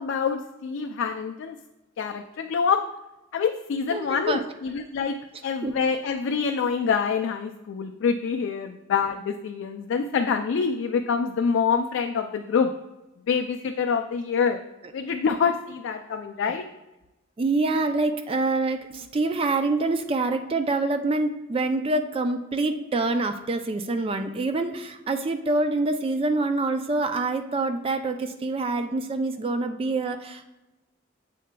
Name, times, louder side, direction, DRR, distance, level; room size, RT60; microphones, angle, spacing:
voice 1, 0.0-1.6 2.0-2.8 3.3-12.7 13.3-14.6 14.9-16.7, left 6 dB, 65° left, 6 dB, 0.3 m, -26 dB
voice 2, 3.9-4.4 5.6-5.7 17.4-30.5, right 3 dB, 30° right, 7 dB, 0.3 m, -26 dB
7.6 x 6.5 x 2.2 m, 1.0 s
head